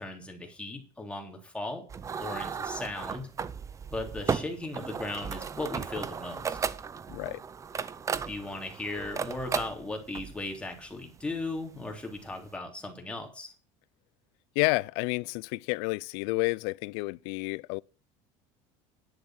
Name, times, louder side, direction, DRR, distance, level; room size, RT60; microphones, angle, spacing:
voice 1, 0.0-1.9 2.2-3.3 3.9-6.6 8.3-13.5, left 2 dB, 10° left, 3.4 m, -37 dB
sound 1, 1.9-12.5, right 6 dB, 25° right, 0.7 m, -35 dB
voice 2, 7.1-7.4 14.6-17.8, left 27 dB, 75° left, 0.4 m, -30 dB
10.5 x 7.9 x 5.8 m
cardioid pair, 130°, 14 cm